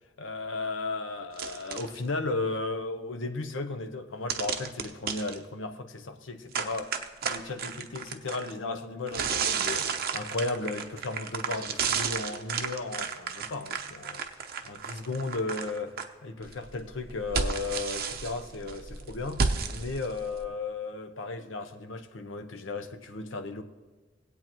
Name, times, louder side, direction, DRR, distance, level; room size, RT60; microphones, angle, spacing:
voice 1, 0.2-6.9 7.2-14.2 14.6-23.6, left 3 dB, 75° left, 0.8 m, -35 dB
sound 1, 1.3-2.0 4.3-5.4 6.5-8.5 9.1-16.0 16.4-20.4, right 6 dB, 50° right, 0.7 m, -32 dB
19.0 x 8.4 x 3.0 m
head